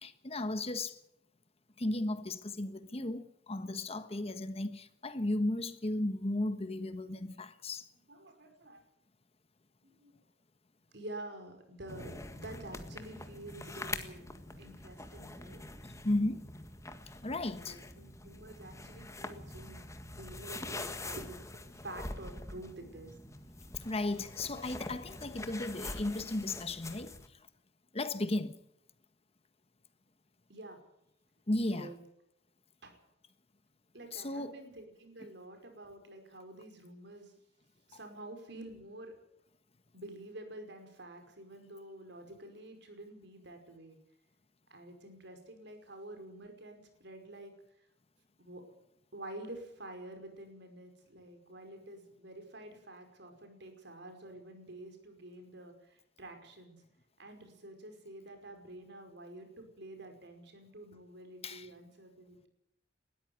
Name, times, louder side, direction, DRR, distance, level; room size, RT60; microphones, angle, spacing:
voice 1, 0.0-1.0 1.8-7.9 16.0-16.4 17.2-17.8 23.8-27.1 27.9-28.6 31.5-31.9 34.1-34.5 61.4-61.7, left 2 dB, 35° left, 1.3 m, -35 dB
voice 2, 8.1-8.8 9.8-10.1 10.9-14.3 14.6-15.6 17.6-23.1 30.5-30.8 31.7-32.0 32.8-33.0 33.9-37.4 37.9-39.2 39.9-44.0 44.7-47.5 48.4-48.6 49.1-56.8 57.2-62.5, right 1 dB, 65° right, 5.3 m, -49 dB
sound 1, 11.9-27.3, left 2 dB, 15° left, 1.7 m, -45 dB
20.5 x 13.5 x 9.4 m
head